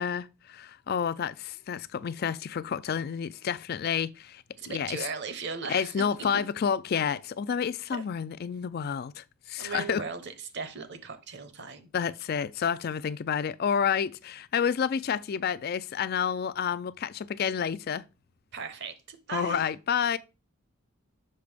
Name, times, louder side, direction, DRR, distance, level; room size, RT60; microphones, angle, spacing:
voice 1, 0.0-5.1 5.7-10.0 11.9-18.0 19.3-20.2, left 7 dB, 45° left, 0.3 m, -30 dB
voice 2, 4.6-6.3 7.9-8.0 9.6-11.9 18.5-19.7, right 5 dB, 50° right, 0.9 m, -38 dB
6.6 x 5.8 x 3.4 m
head